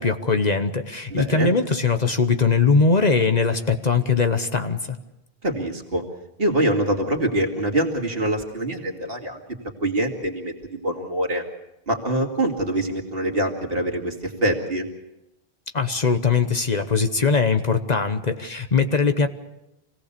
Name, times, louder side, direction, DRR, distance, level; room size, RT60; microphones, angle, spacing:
voice 1, 0.0-4.8 15.7-19.3, left 4 dB, 45° left, 8 dB, 1.1 m, -21 dB
voice 2, 1.1-1.5 5.4-6.0 6.4-9.4 9.8-11.4 11.9-14.9, right 1 dB, 65° right, 2 dB, 2.6 m, -24 dB
25.5 x 17.5 x 6.8 m, 0.92 s
omnidirectional pair, 1.0 m